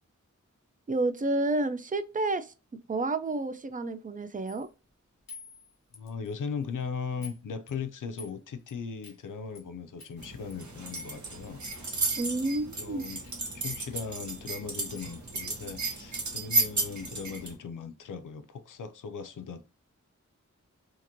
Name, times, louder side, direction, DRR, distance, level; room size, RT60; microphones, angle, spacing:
voice 1, 0.9-2.5 2.9-4.7 12.2-13.1, right 2 dB, 25° right, 0.4 m, -30 dB
sound 1, 4.5-4.7 5.3-6.3 6.6-6.8 7.2-7.4 7.7-8.3 8.7-8.8 9.0-9.2 9.5-9.6 10.0-10.2 10.5-10.6 10.9-11.4 11.7-12.0 12.2-12.4 13.2-13.4 14.1-14.3 14.5-14.6 14.9-15.1 15.6-15.7, left 4 dB, 60° left, 0.9 m, -48 dB
voice 2, 5.9-11.6 12.8-13.2 13.5-19.6, left 5 dB, 85° left, 0.5 m, -38 dB
sound 2, 10.2-17.5, right 3 dB, 65° right, 1.0 m, -33 dB
2.9 x 2.5 x 2.6 m
wide cardioid pair, 65°, 31 cm